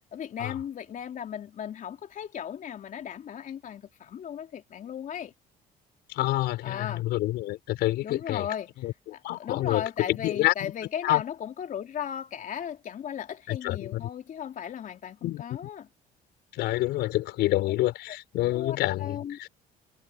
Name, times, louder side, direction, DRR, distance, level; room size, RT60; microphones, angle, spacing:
voice 1, 0.1-5.3 6.6-7.0 8.0-8.7 9.1-15.9 18.1-18.2 18.5-19.5, left 9 dB, 50° left, 3.5 m, -36 dB
voice 2, 6.1-8.5 8.8-10.7 11.0-11.2 13.5-14.1 15.2-15.4 16.5-19.5, left 16 dB, 85° left, 4.4 m, -28 dB
cardioid pair, 110°, 17 cm